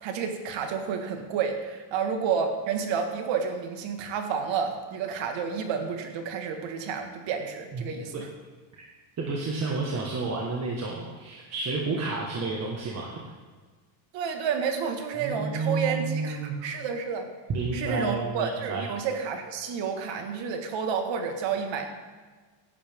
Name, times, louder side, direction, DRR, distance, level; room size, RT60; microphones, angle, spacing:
voice 1, 0.0-8.3 14.1-17.3 17.7-21.9, right 6 dB, 60° right, 5 dB, 1.9 m, -30 dB
voice 2, 9.2-13.1 15.2-16.6 17.5-18.9, right 3 dB, 30° right, -2 dB, 1.6 m, -30 dB
17.5 x 11.0 x 3.7 m, 1.4 s
cardioid pair, 165°, 49 cm